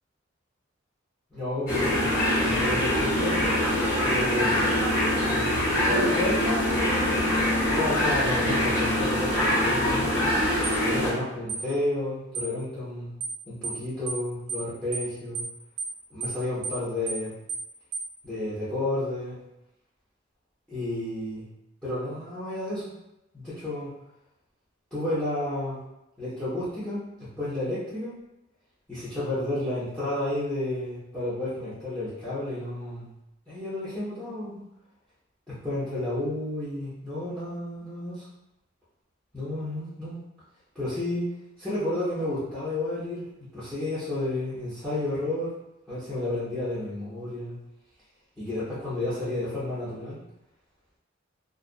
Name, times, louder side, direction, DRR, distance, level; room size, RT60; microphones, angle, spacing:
voice 1, 1.3-2.1 2.4-3.5 4.0-4.7 5.2-7.3 7.7-10.3 10.8-13.1 13.5-15.4 16.1-17.3 18.2-19.4 20.7-21.5 21.8-22.9 23.3-23.9 24.9-25.8 26.2-28.1 28.9-33.1 33.5-34.6 35.5-38.3 39.3-40.2 40.7-41.3 41.6-43.3 43.5-45.5 45.9-47.6 48.4-50.2, left 1 dB, 5° left, -12 dB, 0.8 m, -31 dB
sound 1, 1.7-11.1, left 1 dB, 50° left, 1.2 m, -24 dB
sound 2, 10.6-10.8 11.5-11.7 12.3-12.5 13.2-13.4 13.6-13.8 14.1-14.2 14.5-14.7 14.9-15.1 15.3-15.5 15.8-15.9 16.2-16.4 16.6-16.8 17.1-17.2 17.5-17.7 17.9-18.1, right 4 dB, 65° right, 0.4 m, -32 dB
2.4 x 2.1 x 2.5 m, 0.91 s
head